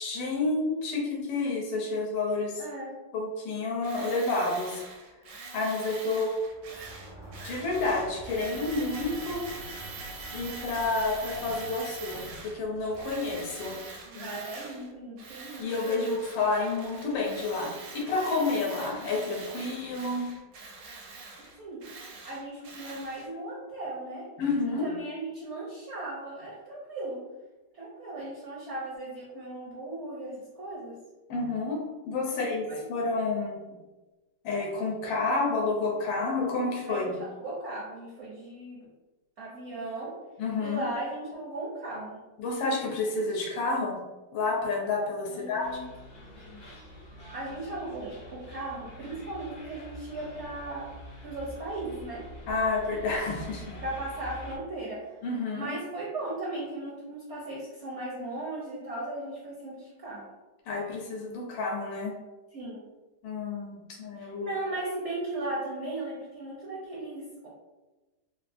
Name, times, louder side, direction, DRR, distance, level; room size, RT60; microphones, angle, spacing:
voice 1, 0.0-2.6 3.1-4.8 5.5-6.3 7.4-9.4 10.3-13.8 14.1-14.3 15.6-20.3 24.4-24.9 31.3-33.8 34.4-37.1 40.4-40.8 42.4-44.0 44.3-45.7 52.5-53.8 55.2-55.7 60.7-62.1 63.2-64.6, left 3 dB, 80° left, -1 dB, 1.4 m, -30 dB
voice 2, 2.6-3.0 14.0-16.0 21.4-21.8 22.2-24.3 24.8-27.2 27.7-31.0 32.3-32.4 32.7-32.9 36.9-38.9 39.4-40.1 40.6-42.2 45.3-45.9 47.3-50.9 51.2-52.2 53.8-55.2 55.5-60.3 62.5-62.9 64.2-67.5, right 2 dB, 60° right, -5 dB, 0.7 m, -37 dB
Tools, 3.8-12.6 12.9-14.9 15.2-23.3, right 3 dB, 75° right, 1.3 m, -44 dB
Sliding door, 6.4-14.1, right 1 dB, 5° left, 0.5 m, -47 dB
sound 1, 45.6-54.6, right 1 dB, 60° left, 0.5 m, -46 dB
3.6 x 2.4 x 2.5 m, 1.2 s
omnidirectional pair, 2.0 m